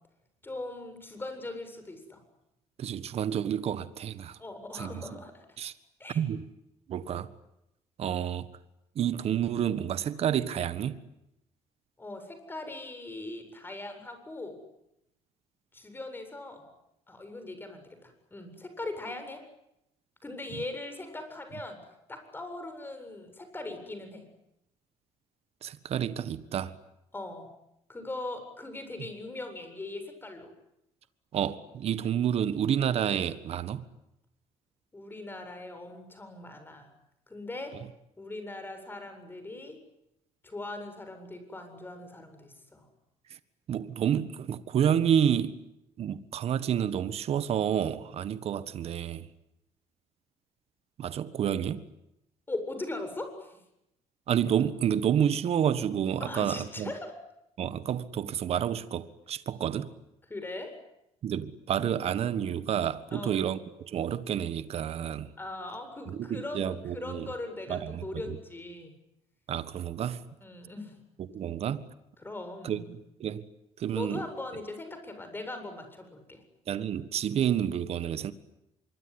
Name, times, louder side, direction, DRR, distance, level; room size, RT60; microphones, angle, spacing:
voice 1, 0.4-2.2 4.4-5.5 6.0-6.2 12.0-14.6 15.7-16.7 17.1-19.4 20.2-24.3 27.1-27.5 27.9-30.5 34.9-36.9 37.3-37.8 38.2-39.8 40.4-42.9 52.5-53.6 56.2-57.1 60.3-60.7 63.1-63.5 65.4-68.9 70.4-71.0 72.2-72.9 73.9-76.4, left 2 dB, 15° left, 7.8 m, -40 dB
voice 2, 2.8-4.4 4.7-4.9 5.6-5.7 6.1-6.5 6.9-7.3 8.0-8.5 8.9-11.0 20.5-20.6 25.6-26.8 31.3-33.8 43.3-43.4 43.7-45.6 46.0-49.3 51.0-51.8 54.3-56.9 57.6-59.9 61.2-65.3 66.1-67.3 67.7-68.4 69.5-70.2 71.2-71.8 72.6-73.5 73.8-74.3 76.7-78.3, right 9 dB, 55° right, 1.6 m, -29 dB
25.5 x 23.5 x 10.0 m
cardioid pair, 105°, 13 cm